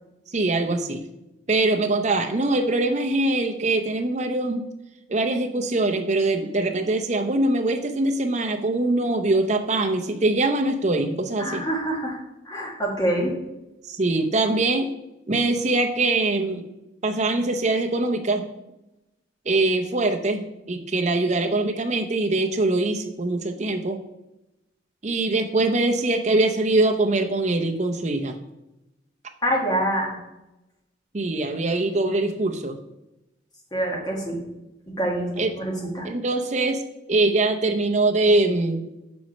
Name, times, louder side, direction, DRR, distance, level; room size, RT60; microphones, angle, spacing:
voice 1, 0.3-1.0 1.5-4.6 5.1-11.6 13.8-14.9 15.3-16.6 17.0-18.5 19.5-24.0 25.0-28.4 31.1-32.8 35.4-35.5 36.0-36.8 37.1-38.9, right 2 dB, 35° right, 4 dB, 0.7 m, -23 dB
voice 2, 11.4-12.2 12.4-13.3 29.4-30.2 33.7-34.4 35.0-36.1, right 1 dB, 20° left, -1 dB, 1.5 m, -25 dB
6.1 x 4.7 x 5.2 m, 0.93 s
head